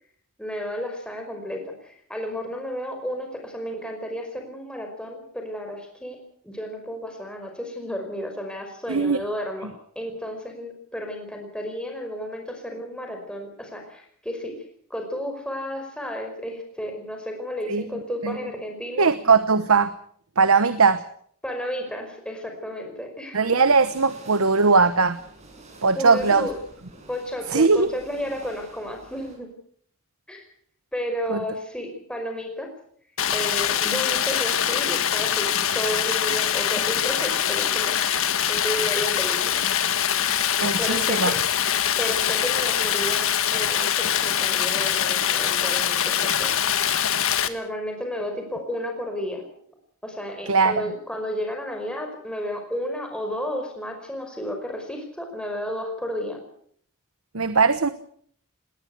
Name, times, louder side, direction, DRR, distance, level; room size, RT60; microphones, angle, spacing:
voice 1, 0.4-6.2 6.4-9.7 9.9-14.6 14.9-19.1 21.4-23.6 25.9-26.5 27.1-29.5 30.3-30.4 30.9-32.7 33.3-35.5 35.7-38.0 38.5-39.6 40.8-41.4 42.0-46.5 47.5-49.5 50.0-56.4, equal, 5° left, 3 dB, 5.2 m, -32 dB
voice 2, 8.9-9.2 17.7-17.8 18.2-18.4 19.0-19.9 20.4-21.0 23.3-25.2 25.8-26.5 27.5-27.9 31.3-31.4 40.6-41.3 50.5-50.8 57.3-57.9, right 4 dB, 85° right, 12 dB, 1.1 m, -19 dB
sound 1, 23.7-29.4, right 2 dB, 30° right, 6.6 m, -48 dB
Stream, 33.2-47.5, left 9 dB, 75° left, 1.5 m, -23 dB
20.0 x 19.0 x 8.2 m, 0.62 s
head